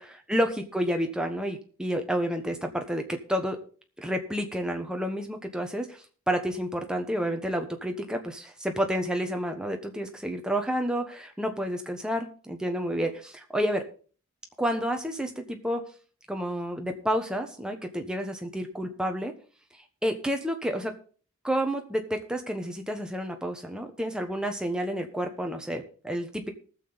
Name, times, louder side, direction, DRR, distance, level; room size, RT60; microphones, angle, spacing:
voice 1, 0.3-3.6 4.0-6.0 6.3-13.8 14.6-15.8 16.3-19.3 20.0-20.9 21.4-26.5, equal, 5° right, 4 dB, 1.1 m, -30 dB
19.5 x 6.9 x 4.0 m, 0.40 s
head